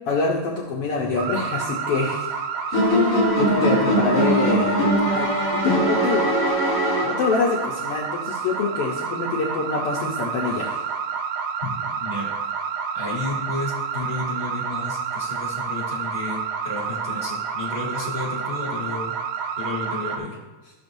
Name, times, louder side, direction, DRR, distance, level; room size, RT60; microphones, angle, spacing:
voice 1, 0.1-2.3 2.7-4.8 5.0-6.3 7.0-10.8, left 4 dB, 70° left, -2 dB, 1.4 m, -26 dB
sound 1, 1.2-20.2, right 6 dB, 80° right, 2.1 m, -29 dB
sound 2, 2.7-7.6, equal, 45° left, 1.5 m, -21 dB
voice 2, 11.6-12.7 12.9-19.1 19.6-20.4, left 2 dB, 15° right, -4 dB, 2.1 m, -32 dB
13.5 x 6.7 x 2.6 m, 1.2 s
omnidirectional pair, 3.6 m